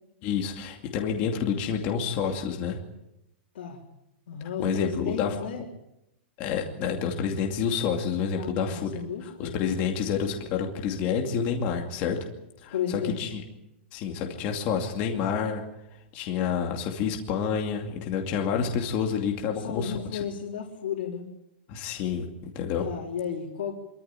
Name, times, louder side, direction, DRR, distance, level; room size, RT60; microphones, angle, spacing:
voice 1, 0.2-2.8 4.6-5.4 6.4-9.0 9.4-12.2 12.6-13.4 13.9-15.6 16.1-20.2 21.7-22.9, left 7 dB, 25° left, 2 dB, 2.5 m, -28 dB
voice 2, 4.3-5.6 8.4-9.7 12.7-13.2 19.5-21.3 22.8-23.7, left 8 dB, 60° left, -4 dB, 4.1 m, -33 dB
25.5 x 14.0 x 9.1 m, 0.88 s
supercardioid pair, 180°, 6 cm